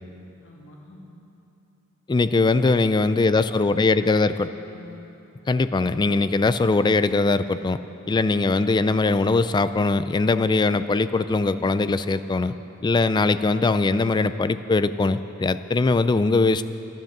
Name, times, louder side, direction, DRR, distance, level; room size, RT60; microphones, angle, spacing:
voice 1, 0.4-1.1 3.2-5.0, equal, 60° left, -3 dB, 2.5 m, -46 dB
voice 2, 2.1-4.5 5.5-7.8 8.1-12.5 12.8-16.7, left 3 dB, 20° left, 13 dB, 0.3 m, -21 dB
13.5 x 12.0 x 7.2 m, 2.8 s
head